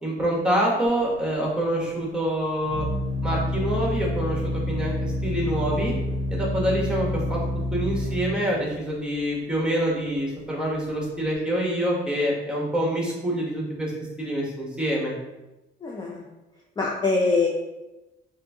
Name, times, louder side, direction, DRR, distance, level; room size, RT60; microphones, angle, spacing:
voice 1, 0.0-2.9 3.2-5.9 6.3-7.4 7.7-13.9 14.2-15.1, right 1 dB, 5° right, -3 dB, 1.1 m, -26 dB
Organ, 0.9-11.3, left 1 dB, 60° left, 1.3 m, -29 dB
voice 2, 15.8-16.2 16.8-17.5, left 3 dB, 20° left, -2 dB, 0.4 m, -23 dB
3.0 x 2.6 x 3.4 m, 1.0 s
cardioid pair, 90°, 20 cm